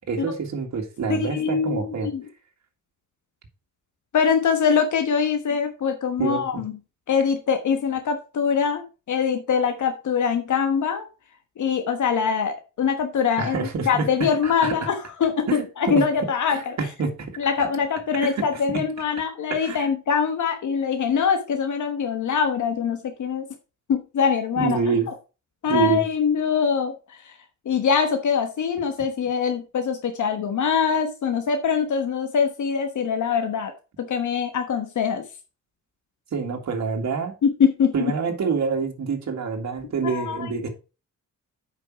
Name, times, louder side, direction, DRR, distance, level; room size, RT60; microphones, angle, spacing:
voice 1, 0.1-2.1 5.5-5.6 6.2-6.6 13.4-14.9 15.5-16.0 16.5-17.3 18.2-18.5 18.7-18.8 19.6-19.9 24.6-25.1 25.7-26.0 29.0-29.1 36.3-37.4 37.9-40.7, right 5 dB, 60° right, 2 dB, 2.1 m, -27 dB
voice 2, 1.1-2.2 4.1-6.7 7.1-11.0 11.6-16.8 17.4-23.5 23.9-24.8 25.6-27.3 27.6-33.7 34.0-35.2 37.4-38.1 40.0-40.7, left 6 dB, 70° left, 6 dB, 1.3 m, -23 dB
8.2 x 5.7 x 4.7 m, 0.31 s
wide cardioid pair, 125°, 31 cm